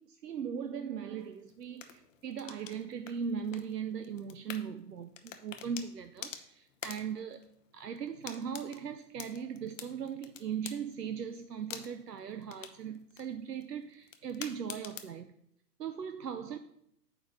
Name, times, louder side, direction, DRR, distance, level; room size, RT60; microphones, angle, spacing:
voice 1, 0.0-7.4 7.7-15.3 15.8-16.6, right 7 dB, 75° right, 0.7 m, -39 dB
sound 1, 1.2-15.2, left 8 dB, 50° left, 1.0 m, -49 dB
9.1 x 3.8 x 6.5 m
figure-of-eight pair, 115°, 49 cm